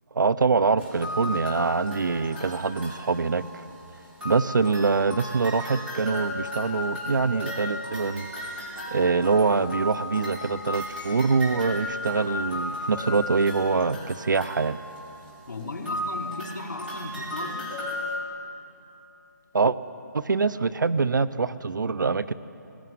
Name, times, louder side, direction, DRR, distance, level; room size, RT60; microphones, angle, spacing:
voice 1, 0.1-3.6 4.2-8.3 8.9-14.8 19.5-19.8 20.1-22.3, right 4 dB, 80° right, 16 dB, 0.8 m, -24 dB
sound 1, 0.8-3.8 4.2-18.2, left 1 dB, 10° right, 4.5 m, -35 dB
voice 2, 15.5-17.7, left 2 dB, 65° left, 1 dB, 4.6 m, -36 dB
21.0 x 20.0 x 9.5 m, 2.8 s
hypercardioid pair, 165°, 10 cm